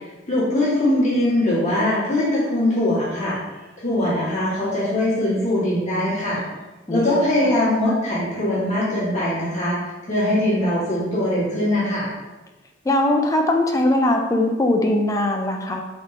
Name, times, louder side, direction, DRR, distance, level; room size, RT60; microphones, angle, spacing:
voice 1, 0.3-3.4 3.8-6.4 6.9-9.8 10.1-12.1, left 1 dB, 35° left, -9 dB, 1.4 m, -21 dB
voice 2, 6.9-7.3 12.9-15.8, left 1 dB, 15° left, 3 dB, 0.3 m, -20 dB
4.0 x 3.5 x 2.5 m, 1.1 s
head